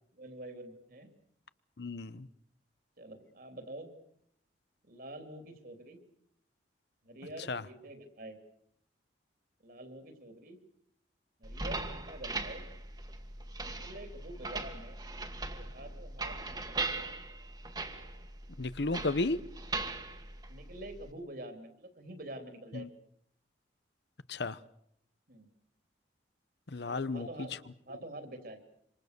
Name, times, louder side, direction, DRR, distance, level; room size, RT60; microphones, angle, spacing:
voice 1, 0.1-1.1 3.0-3.9 4.8-6.0 7.0-8.4 9.6-10.6 11.4-12.6 13.6-15.0 15.5-16.8 20.5-22.9 25.3-25.5 26.9-27.6 27.9-28.6, right 1 dB, 55° right, 3.3 m, -47 dB
voice 2, 1.8-2.3 7.5-7.6 18.6-19.4 22.7-22.9 24.3-24.6 26.7-27.3, left 3 dB, 70° left, 0.9 m, -33 dB
sound 1, 11.4-21.1, right 3 dB, 20° right, 1.8 m, -40 dB
27.0 x 26.0 x 6.8 m
head